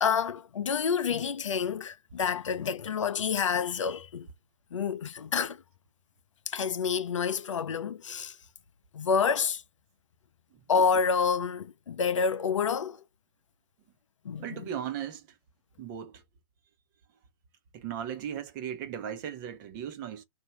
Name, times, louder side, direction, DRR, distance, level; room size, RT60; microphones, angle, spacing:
voice 1, 0.0-4.3 4.7-5.6 6.5-8.4 8.9-9.6 10.7-13.0 14.2-14.7, left 6 dB, 70° left, 0.6 m, -28 dB
voice 2, 14.4-15.2 15.8-16.2 17.7-20.2, right 9 dB, 35° right, 0.9 m, -37 dB
3.1 x 2.6 x 4.4 m
figure-of-eight pair, 120°, 17 cm